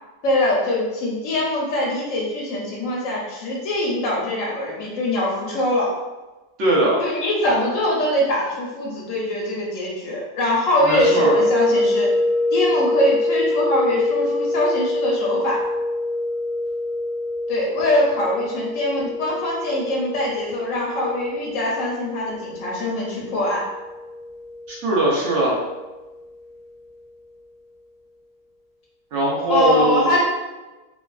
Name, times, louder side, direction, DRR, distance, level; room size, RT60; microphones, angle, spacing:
voice 1, 0.2-5.9 7.0-12.1 12.5-15.6 17.5-23.6 29.5-30.2, left 1 dB, 85° left, -3 dB, 1.1 m, -23 dB
voice 2, 6.6-7.0 10.9-11.3 24.7-25.6 29.1-30.1, right 1 dB, 65° right, -4 dB, 1.0 m, -20 dB
sound 1, 11.0-25.9, left 2 dB, 50° right, 1.5 m, -25 dB
3.3 x 2.2 x 2.3 m, 1.1 s
omnidirectional pair, 1.3 m